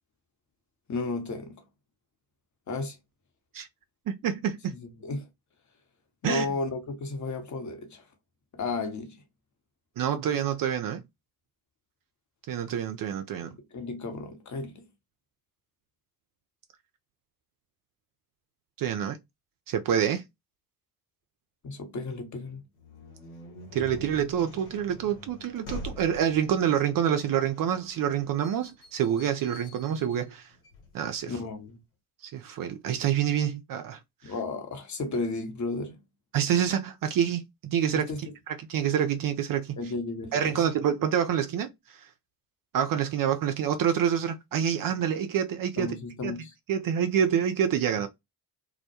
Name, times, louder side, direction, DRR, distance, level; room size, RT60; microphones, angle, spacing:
voice 1, 0.9-1.6 2.7-3.0 4.7-5.3 6.2-8.1 8.5-9.2 13.4-14.9 21.6-22.6 31.3-31.8 34.2-36.0 37.9-38.2 39.8-40.6 45.8-46.5, left 3 dB, 35° left, 0.9 m, -34 dB
voice 2, 4.1-4.7 6.2-6.5 10.0-11.0 12.5-13.6 18.8-19.2 19.7-20.2 23.7-30.5 30.9-31.3 32.2-34.0 34.2-34.3 36.3-38.1 38.5-39.8 40.3-42.1 42.7-45.9 46.2-46.3 46.7-48.1, right 9 dB, 45° right, 0.5 m, -27 dB
sound 1, 22.7-31.4, left 2 dB, 80° left, 1.0 m, -45 dB
2.1 x 2.1 x 2.7 m
hypercardioid pair, 40°, 49 cm